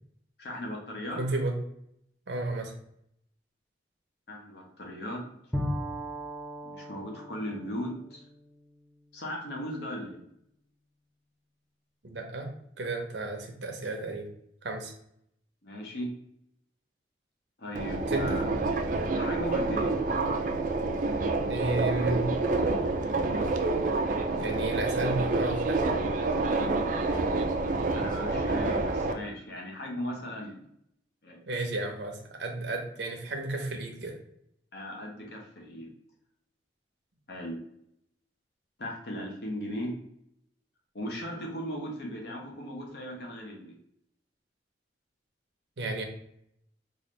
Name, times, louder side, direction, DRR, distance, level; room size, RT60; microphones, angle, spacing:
voice 1, 0.4-1.2 4.3-5.2 6.6-8.2 9.1-10.2 15.6-16.1 17.6-18.5 19.1-20.0 27.9-30.6 31.2-31.4 34.7-35.9 37.3-37.6 38.8-40.0 40.9-43.7, equal, 60° left, -1 dB, 0.9 m, -37 dB
voice 2, 1.2-1.6 2.3-2.7 12.0-14.3 14.6-14.9 18.1-18.5 21.5-22.3 24.4-25.8 31.5-34.2 45.8-46.0, right 2 dB, 80° right, 3 dB, 0.7 m, -32 dB
Bowed string instrument, 5.5-9.3, equal, 5° left, 0.5 m, -37 dB
Subway metro underground, 17.8-29.1, right 3 dB, 45° right, 0.4 m, -28 dB
3.9 x 2.5 x 3.1 m, 0.74 s
head